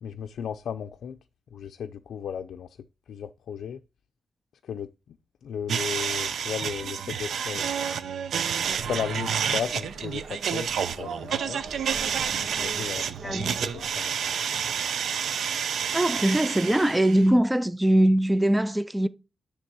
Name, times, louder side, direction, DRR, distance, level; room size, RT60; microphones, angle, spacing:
voice 1, 0.0-1.2 1.5-2.8 3.1-3.8 4.6-5.2 5.4-7.7 8.8-11.6 12.5-14.3, left 8 dB, 80° left, 0.4 m, -35 dB
sound 1, 5.7-17.3, right 7 dB, 70° right, 0.6 m, -29 dB
sound 2, 8.6-13.9, right 4 dB, 90° right, 1.3 m, -41 dB
voice 2, 13.2-13.6 15.9-19.1, right 1 dB, 5° right, 0.3 m, -22 dB
9.9 x 3.3 x 6.1 m
wide cardioid pair, 160°, 0 cm